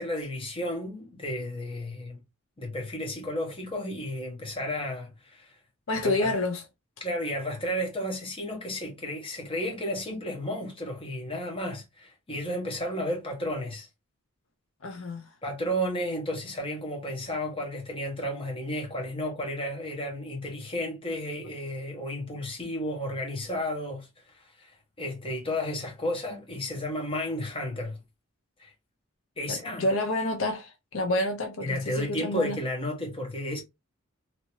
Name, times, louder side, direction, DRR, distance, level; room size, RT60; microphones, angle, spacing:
voice 1, 0.0-2.2 2.6-5.6 6.0-6.3 7.0-13.9 15.4-24.1 24.3-28.0 28.6-28.7 29.4-29.8 31.6-33.6, left 1 dB, 25° left, 1.2 m, -33 dB
voice 2, 5.9-6.6 14.8-15.2 29.5-32.6, left 2 dB, 70° left, 0.7 m, -29 dB
2.9 x 2.8 x 2.9 m
head